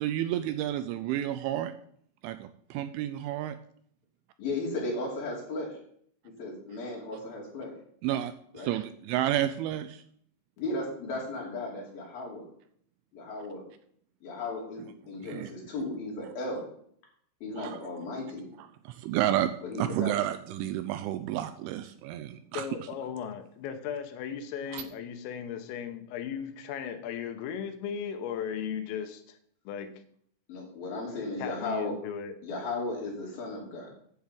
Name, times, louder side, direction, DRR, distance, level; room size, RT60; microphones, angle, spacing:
voice 1, 0.0-1.7 2.2-3.6 8.0-10.0 15.3-15.5 17.6-17.8 18.9-19.5 19.8-22.7 24.7-24.8, right 12 dB, 85° right, 10 dB, 2.8 m, -31 dB
voice 2, 4.4-5.8 6.4-7.7 8.5-8.7 10.6-12.5 13.1-13.6 14.2-16.7 17.4-18.5 19.6-20.2 30.5-31.9 32.4-33.9, left 2 dB, 50° left, -1 dB, 4.2 m, -35 dB
voice 3, 22.6-29.4 29.7-30.0 31.4-32.4, left 8 dB, 80° left, 8 dB, 3.6 m, -36 dB
9.6 x 7.0 x 7.7 m, 0.65 s
omnidirectional pair, 5.9 m